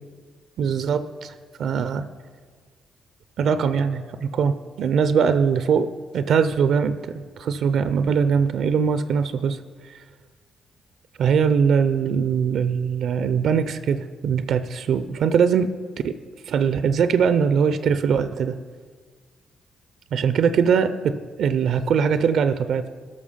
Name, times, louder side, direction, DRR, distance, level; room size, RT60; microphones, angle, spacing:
voice 1, 0.6-1.3 1.6-2.1 3.4-5.9 6.1-9.6 9.9-10.0 11.2-15.7 16.0-16.2 16.4-18.6 20.1-22.9, right 6 dB, 65° right, 12 dB, 0.5 m, -21 dB
12.5 x 6.1 x 5.5 m, 1.6 s
hypercardioid pair, 45°, 0 cm